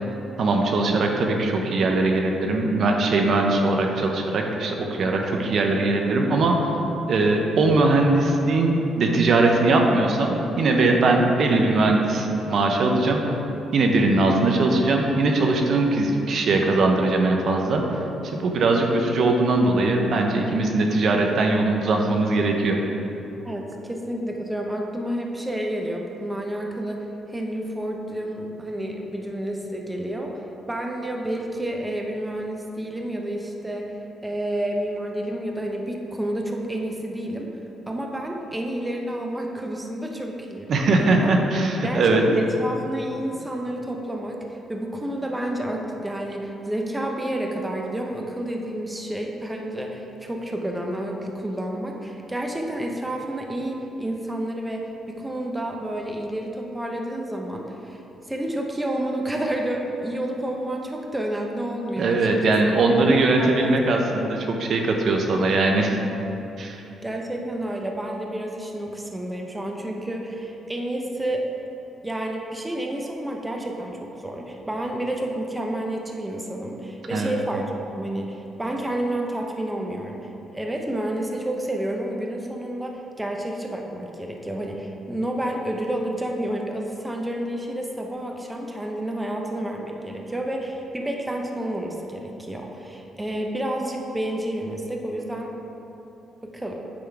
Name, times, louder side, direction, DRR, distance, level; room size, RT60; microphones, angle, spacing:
voice 1, 0.4-6.5 7.1-13.2 13.7-18.0 18.3-22.8 40.7-42.2 62.0-66.0 66.6-66.8 77.1-77.3, right 2 dB, 60° right, 2 dB, 0.7 m, -20 dB
voice 2, 23.4-34.0 34.2-37.5 37.9-40.7 41.0-41.3 41.8-58.0 58.3-63.1 63.4-64.0 67.0-71.5 72.0-95.5 96.4-96.8, right 1 dB, 10° right, 1 dB, 0.7 m, -30 dB
8.6 x 3.7 x 4.6 m, 3.0 s
cardioid pair, 90°, 0 cm